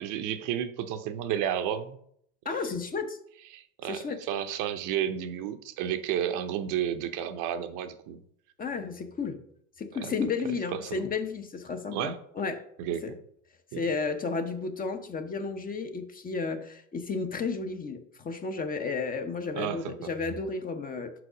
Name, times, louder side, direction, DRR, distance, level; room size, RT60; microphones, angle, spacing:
voice 1, 0.0-2.0 2.5-2.6 3.5-8.2 10.0-10.1 10.7-11.0 11.9-12.2 12.8-13.2 13.7-13.8 19.6-20.1, right 10 dB, 50° right, 9 dB, 0.7 m, -32 dB
voice 2, 2.5-3.2 3.8-4.2 8.6-9.4 9.8-12.6 13.0-13.1 13.7-21.1, left 4 dB, 20° left, 7 dB, 0.7 m, -32 dB
6.0 x 4.9 x 4.9 m, 0.68 s
hypercardioid pair, 100°, 40 cm